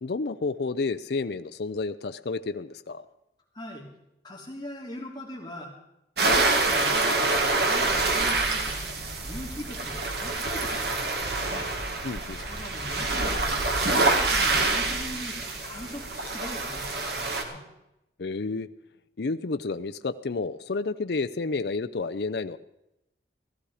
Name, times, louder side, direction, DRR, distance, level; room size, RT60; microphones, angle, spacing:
voice 1, 0.0-3.0 12.0-12.4 18.2-18.7 19.2-22.6, left 3 dB, 65° left, 10 dB, 0.5 m, -30 dB
voice 2, 3.5-3.9 4.2-5.7 6.2-8.9 9.2-11.2 11.5-11.7 12.4-17.6, left 1 dB, 25° left, -2 dB, 3.0 m, -41 dB
sound 1, 6.2-17.4, right 3 dB, 65° right, 2.1 m, -26 dB
Waves surf, 7.3-14.6, right 1 dB, 35° right, 2.5 m, -46 dB
16.5 x 13.5 x 4.9 m, 0.87 s
head